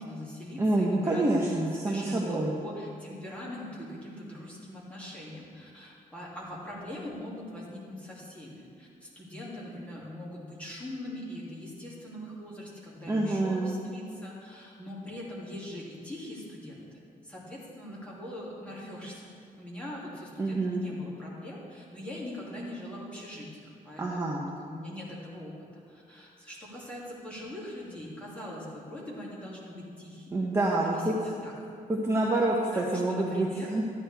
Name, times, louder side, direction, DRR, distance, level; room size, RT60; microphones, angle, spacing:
voice 1, 0.0-1.2 1.8-19.3 19.6-25.5 25.9-31.5 32.7-33.7, left 1 dB, 10° left, -6 dB, 2.5 m, -42 dB
voice 2, 0.6-2.5 13.1-13.7 20.4-20.9 24.0-24.5 30.3-31.1 31.9-33.9, right 2 dB, 15° right, -3 dB, 0.9 m, -27 dB
13.0 x 9.6 x 3.4 m, 2.3 s
wide cardioid pair, 145°, 15 cm